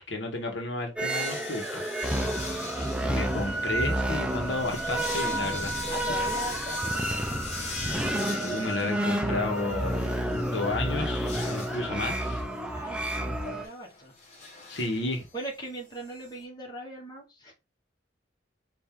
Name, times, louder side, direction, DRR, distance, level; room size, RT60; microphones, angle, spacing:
voice 1, 0.1-1.8 3.1-5.8 8.4-10.1 10.4-12.4 14.7-15.3, left 2 dB, 75° left, 1.1 m, -32 dB
sound 1, 1.0-13.6, right 1 dB, 5° right, 0.4 m, -30 dB
sound 2, 1.1-16.4, left 3 dB, 35° left, 1.2 m, -42 dB
voice 2, 2.7-3.7 5.9-7.4 12.7-14.1 15.3-17.5, right 1 dB, 20° left, 1.4 m, -41 dB
4.3 x 2.6 x 3.6 m
head